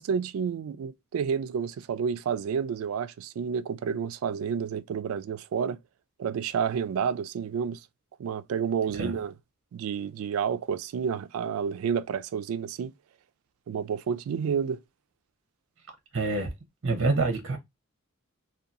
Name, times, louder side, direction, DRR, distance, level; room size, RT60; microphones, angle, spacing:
voice 1, 0.0-5.8 6.2-7.8 8.2-9.3 9.7-12.9 13.7-14.8, right 7 dB, 85° right, 0.3 m, -30 dB
voice 2, 16.1-16.5 16.8-17.6, right 3 dB, 60° right, 0.7 m, -26 dB
2.7 x 2.2 x 2.4 m
head